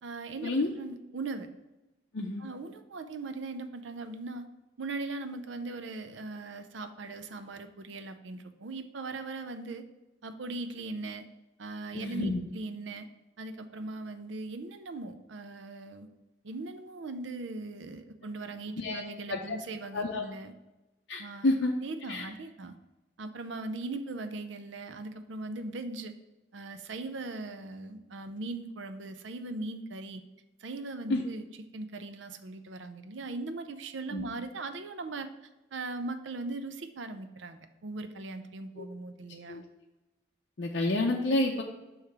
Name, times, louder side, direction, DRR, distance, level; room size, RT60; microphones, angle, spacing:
voice 1, 0.0-1.5 2.4-4.5 4.8-9.8 10.2-11.2 11.6-13.1 13.4-16.1 16.4-20.5 21.2-21.5 21.8-22.7 23.2-26.1 26.5-30.2 30.6-31.5 31.7-35.3 35.7-39.6, right 3 dB, 80° right, 9 dB, 0.6 m, -39 dB
voice 2, 11.9-12.4 18.7-19.0 19.3-19.6 19.9-20.2 21.1-21.7 22.1-22.3 31.1-31.2 34.1-34.2 38.8-38.9 39.5-39.6 40.6-41.6, left 2 dB, 60° left, -1 dB, 0.6 m, -29 dB
6.6 x 3.1 x 5.8 m, 1.0 s
head